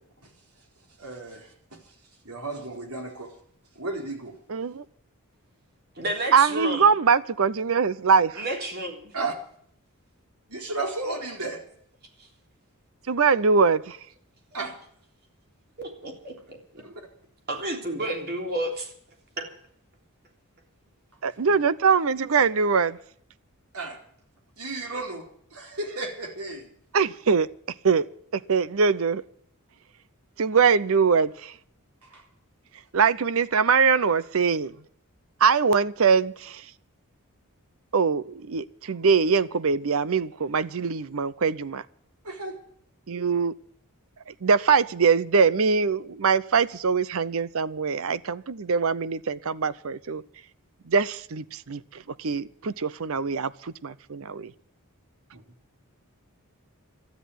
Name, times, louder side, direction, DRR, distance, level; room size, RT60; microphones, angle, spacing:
voice 1, 1.0-1.5 2.2-3.3 3.7-4.3 9.1-9.3 10.5-11.6 14.5-14.8 16.8-17.0 21.5-21.6 23.7-24.0 24.6-25.2 25.5-26.7 32.0-32.2 42.2-42.6 55.3-55.4, right 3 dB, 85° right, 4.2 m, -33 dB
voice 2, 4.5-4.8 6.3-8.4 13.1-14.0 21.2-23.0 26.9-27.5 27.8-28.1 28.3-29.2 30.4-31.5 32.9-34.7 35.4-36.7 37.9-41.8 43.1-43.5 44.3-50.2 50.9-54.5, right 5 dB, 65° right, 0.6 m, -23 dB
voice 3, 6.0-6.9 8.4-9.1 15.8-16.8 17.5-18.9 19.4-19.5, right 1 dB, 45° right, 3.5 m, -31 dB
13.0 x 10.5 x 9.3 m
head